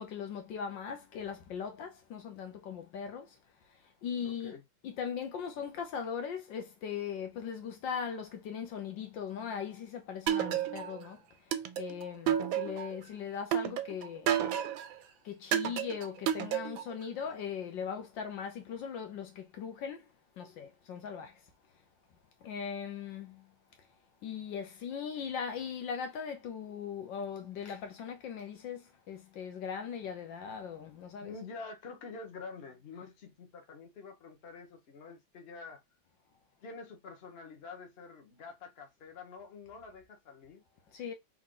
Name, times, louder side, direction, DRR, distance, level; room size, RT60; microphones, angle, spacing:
voice 1, 0.0-3.2 4.0-4.6 4.8-11.2 11.8-14.3 15.3-20.0 20.4-21.3 22.4-23.3 24.2-28.8 29.1-31.3 41.0-41.1, left 7 dB, 70° left, 1.5 m, -39 dB
voice 2, 4.2-4.6 31.2-35.8 36.6-40.6, left 4 dB, 40° left, 1.1 m, -47 dB
sound 1, 10.3-11.0 11.5-13.0 13.5-14.9 15.5-17.0, right 10 dB, 85° right, 1.4 m, -31 dB
3.7 x 3.1 x 3.8 m
omnidirectional pair, 2.1 m